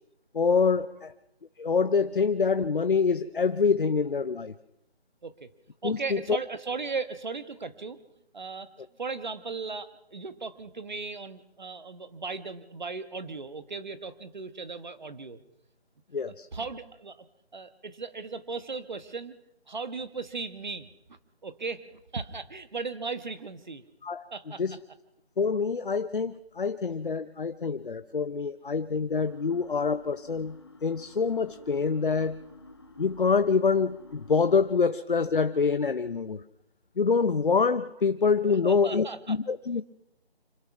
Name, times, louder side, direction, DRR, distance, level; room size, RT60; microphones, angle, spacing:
voice 1, 0.3-1.1 1.6-4.5 5.8-6.4 16.1-16.5 24.0-24.2 24.6-24.8 25.4-30.5 30.8-32.4 33.0-36.4 37.0-39.8, left 5 dB, 55° left, 12 dB, 0.7 m, -26 dB
voice 2, 5.8-8.0 8.3-8.7 9.0-15.4 16.5-17.3 17.5-19.4 19.7-20.9 21.4-23.8 24.3-24.6 38.4-39.4, right 4 dB, 45° right, 12 dB, 1.3 m, -37 dB
sound 1, 29.3-34.7, left 2 dB, 25° left, 0.9 m, -51 dB
26.0 x 18.0 x 5.9 m, 0.82 s
figure-of-eight pair, 165°, 32 cm